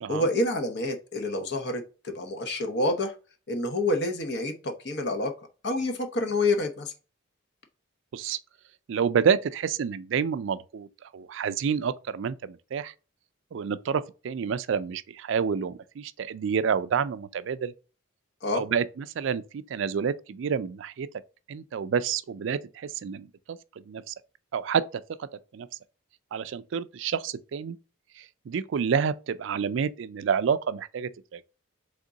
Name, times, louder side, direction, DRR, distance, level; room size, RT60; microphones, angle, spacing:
voice 1, 0.1-3.1 3.5-5.3 5.6-6.9 18.4-18.6, left 2 dB, 55° left, 0.8 m, -28 dB
voice 2, 8.9-10.9 11.1-12.9 13.5-17.7 18.5-21.1 21.5-23.6 23.9-24.1 24.5-24.8 25.2-25.3 25.5-25.7 26.3-27.8 28.2-31.4, right 6 dB, 65° right, 0.3 m, -28 dB
3.7 x 3.6 x 3.9 m
head